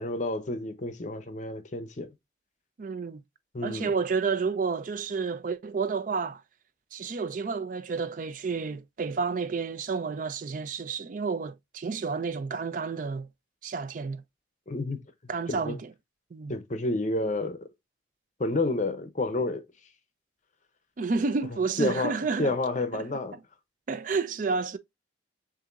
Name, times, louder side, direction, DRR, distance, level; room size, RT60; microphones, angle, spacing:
voice 1, 0.0-2.1 3.5-3.9 14.7-15.0 15.5-15.8 16.5-17.6 18.4-19.6 21.8-23.4, left 2 dB, 40° left, 0.6 m, -30 dB
voice 2, 2.8-3.2 3.6-6.4 6.9-13.3 13.6-14.2 15.3-15.9 16.3-16.5 21.0-22.5 22.9-23.1 23.9-24.8, right 4 dB, 45° right, 0.4 m, -30 dB
6.7 x 2.6 x 2.4 m
head